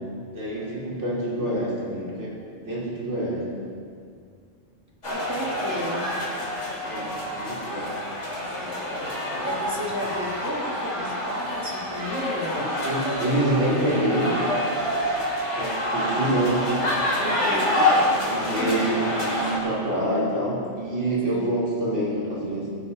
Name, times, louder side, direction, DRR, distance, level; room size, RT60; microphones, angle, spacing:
voice 1, 0.3-2.4 2.7-3.5 6.8-8.0 12.6-14.4 15.5-16.8 18.3-19.1 19.4-22.7, right 1 dB, 80° right, -7 dB, 3.6 m, -26 dB
sound 1, 5.0-19.6, left 1 dB, 75° left, 3.4 m, -27 dB
voice 2, 5.1-6.2 9.4-12.6 17.2-17.9 18.5-19.0 21.3-21.6, equal, 15° right, -3 dB, 2.1 m, -33 dB
18.5 x 11.0 x 4.2 m, 2.2 s
omnidirectional pair, 1.2 m